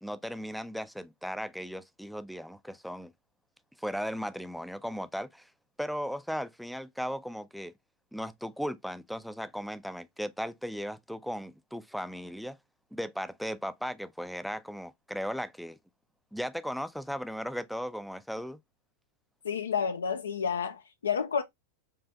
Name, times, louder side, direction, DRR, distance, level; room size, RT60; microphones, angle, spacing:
voice 1, 0.0-3.1 3.8-5.5 5.8-7.7 8.1-12.6 12.9-15.8 16.3-18.6, equal, ahead, 0.3 m, -36 dB
voice 2, 19.4-21.4, left 6 dB, 70° left, 0.4 m, -30 dB
4.7 x 2.5 x 3.4 m
figure-of-eight pair, 90°, 0 cm